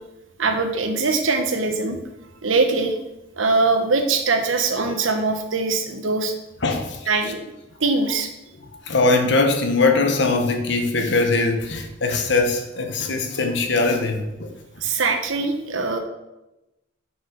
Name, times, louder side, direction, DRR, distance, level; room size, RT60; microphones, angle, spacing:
voice 1, 0.4-2.0 2.4-3.0 3.4-6.3 7.1-7.4 7.8-8.3 14.8-16.0, right 3 dB, 80° right, 5 dB, 1.1 m, -22 dB
voice 2, 6.6-7.1 8.8-14.5, left 3 dB, 60° left, 4 dB, 1.2 m, -21 dB
6.1 x 6.1 x 5.1 m, 0.94 s
head